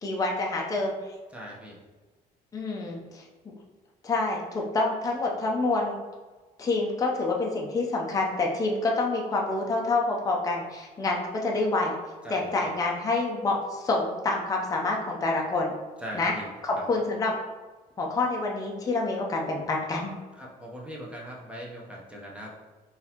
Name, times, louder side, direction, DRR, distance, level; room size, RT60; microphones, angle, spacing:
voice 1, 0.0-0.9 2.5-3.2 4.0-6.0 6.6-12.0 12.3-15.7 16.1-16.3 16.6-17.3 18.0-20.1, left 3 dB, 20° left, -1 dB, 0.5 m, -27 dB
voice 2, 1.3-1.8 12.2-12.7 16.0-16.8 20.3-22.6, equal, 5° right, -4 dB, 0.8 m, -41 dB
3.8 x 2.7 x 2.8 m, 1.3 s
cardioid pair, 110°, 17 cm